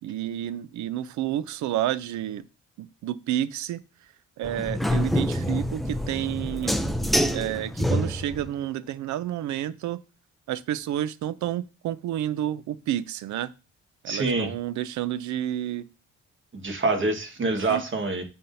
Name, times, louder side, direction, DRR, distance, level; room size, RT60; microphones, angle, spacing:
voice 1, 0.0-2.5 2.8-6.8 7.3-10.0 10.5-13.5 14.0-15.9 17.4-17.8, right 12 dB, 75° right, 0.5 m, -30 dB
sound 1, 4.4-8.5, equal, ahead, 0.5 m, -26 dB
voice 2, 14.1-14.5 16.5-18.2, right 3 dB, 40° right, 1.5 m, -26 dB
10.0 x 3.6 x 2.7 m
cardioid pair, 90°, 30 cm